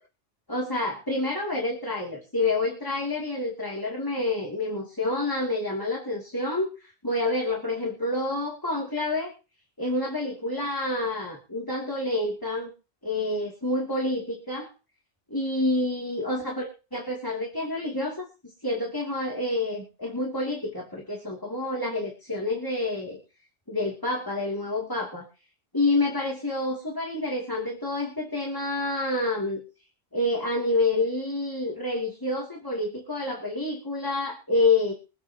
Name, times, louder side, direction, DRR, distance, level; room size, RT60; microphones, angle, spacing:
voice 1, 0.5-9.3 9.8-12.7 13.0-14.7 15.3-18.3 18.6-23.2 23.7-25.3 25.7-29.6 30.1-34.9, left 2 dB, 15° left, -2 dB, 2.7 m, -28 dB
24.0 x 8.7 x 2.9 m, 0.33 s
omnidirectional pair, 1.3 m